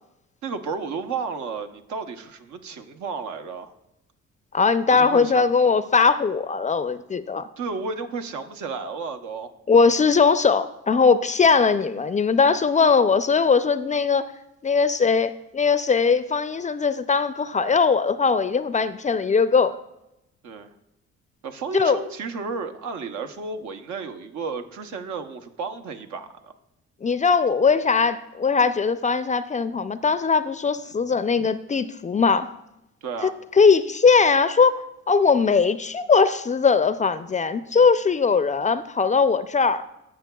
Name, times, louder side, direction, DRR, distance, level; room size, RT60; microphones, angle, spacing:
voice 1, 0.4-3.7 4.9-5.5 7.6-9.5 20.4-20.7 21.4-26.5 33.0-33.4, right 4 dB, 75° right, 7 dB, 0.8 m, -32 dB
voice 2, 4.5-7.5 9.7-14.3 14.6-19.8 21.7-22.0 27.0-32.5 33.2-39.8, left 5 dB, 25° left, 13 dB, 0.4 m, -20 dB
16.5 x 5.8 x 2.3 m, 0.88 s
cardioid pair, 75°, 29 cm